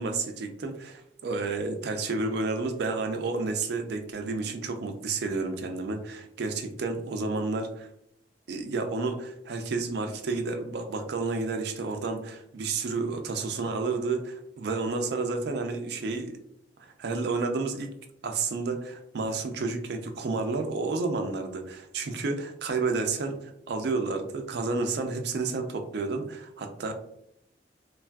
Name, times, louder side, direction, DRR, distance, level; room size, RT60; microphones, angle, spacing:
voice 1, 0.0-7.9 8.5-16.4 16.8-17.9 18.2-26.9, right 3 dB, 65° right, 5 dB, 0.4 m, -31 dB
3.3 x 2.3 x 2.2 m, 0.74 s
head